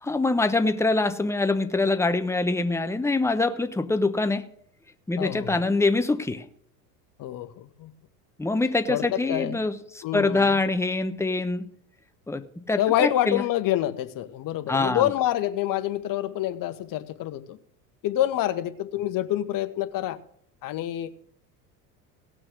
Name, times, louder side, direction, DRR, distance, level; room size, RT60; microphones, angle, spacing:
voice 1, 0.0-4.5 5.1-6.4 8.4-11.7 12.3-13.4 14.7-15.1, left 3 dB, 5° left, 9 dB, 1.0 m, -24 dB
voice 2, 5.2-5.6 7.2-7.9 8.9-9.6 10.0-10.5 12.8-17.6 18.0-20.2 20.6-21.1, left 13 dB, 45° left, 10 dB, 1.3 m, -27 dB
17.5 x 6.2 x 6.2 m, 0.66 s
hypercardioid pair, 80°, 47 cm